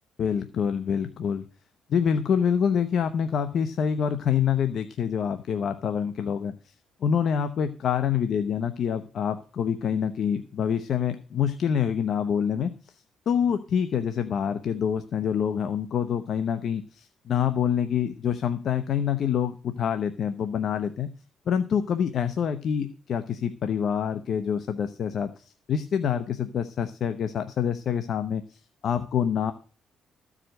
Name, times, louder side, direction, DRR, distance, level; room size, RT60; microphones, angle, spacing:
voice 1, 0.2-1.4 1.9-6.5 7.0-12.7 13.3-21.1 21.5-29.5, left 8 dB, 60° left, 10 dB, 0.8 m, -26 dB
14.0 x 5.0 x 7.7 m, 0.39 s
cardioid pair, 90°, 0 cm